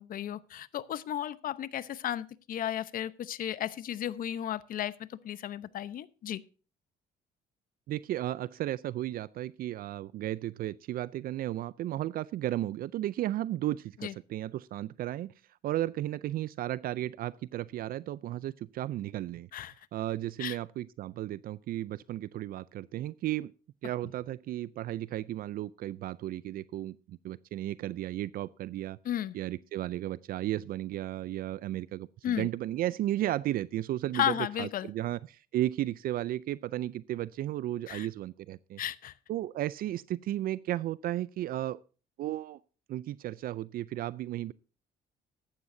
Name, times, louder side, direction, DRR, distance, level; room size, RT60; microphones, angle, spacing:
voice 1, 0.0-6.4 14.0-14.1 19.5-19.7 20.4-20.6 29.0-29.4 32.2-32.5 34.1-34.9 37.9-38.1 38.8-39.1, left 11 dB, 55° left, 0.9 m, -34 dB
voice 2, 7.9-15.3 15.6-19.5 19.9-23.5 23.8-29.0 29.3-38.8 39.3-41.8 42.2-42.6 42.9-44.5, right 14 dB, 60° right, 0.4 m, -34 dB
15.0 x 12.0 x 2.7 m
cardioid pair, 110°, 17 cm